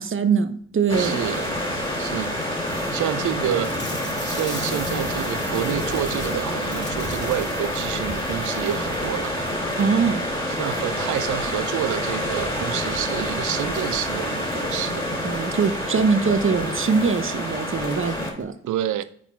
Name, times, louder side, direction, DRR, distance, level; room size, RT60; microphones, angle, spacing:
voice 1, 0.0-1.2 9.8-10.2 15.2-18.5, right 5 dB, 40° right, 0.8 m, -22 dB
sound 1, 0.8-1.2 1.9-2.0 2.2-2.3 2.6-12.2 12.5-12.6 13.0-13.1 13.7-16.0 16.9-17.0 17.3-18.5, left 2 dB, 35° left, 2.5 m, -42 dB
sound 2, 0.9-18.3, left 1 dB, 15° left, 2.4 m, -27 dB
voice 2, 0.9-1.5 2.0-2.4 2.9-3.7 4.2-9.4 10.5-15.1 18.7-19.0, right 11 dB, 70° right, 0.6 m, -28 dB
5.9 x 4.1 x 4.5 m
supercardioid pair, 50°, 32 cm